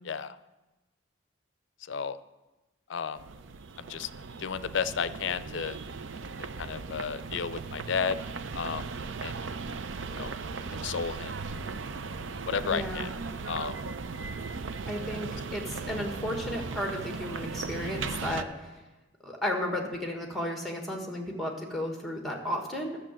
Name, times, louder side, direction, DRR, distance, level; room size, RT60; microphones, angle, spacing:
voice 1, 0.0-0.4 1.9-2.2 2.9-3.2 3.8-4.1 4.4-5.8 6.4-8.2 8.5-8.9 9.2-9.3 10.2-10.3 10.7-11.3 12.5-13.1 13.4-13.7, left 6 dB, 65° left, 14 dB, 0.5 m, -32 dB
sound 1, 3.1-18.4, right 4 dB, 70° right, 0.5 m, -37 dB
voice 2, 12.6-13.1 14.9-18.7 19.2-23.0, left 1 dB, ahead, 2 dB, 1.5 m, -34 dB
12.0 x 6.7 x 7.5 m, 1.1 s
head